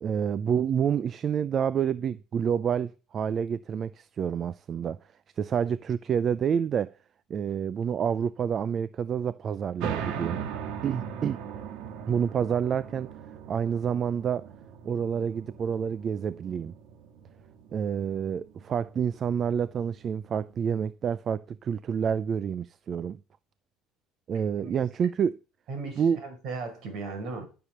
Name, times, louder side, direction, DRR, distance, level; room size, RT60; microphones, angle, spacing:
voice 1, 0.0-5.0 5.4-7.0 7.3-10.4 10.8-11.4 12.1-13.1 13.5-14.5 14.8-16.7 17.7-23.2 24.3-25.4 26.0-26.2, right 7 dB, 40° right, 0.5 m, -28 dB
sound 1, 9.8-20.9, right 7 dB, 75° right, 1.7 m, -40 dB
voice 2, 25.7-27.5, right 3 dB, 60° right, 4.9 m, -37 dB
13.0 x 7.0 x 6.5 m
cardioid pair, 110°, 0 cm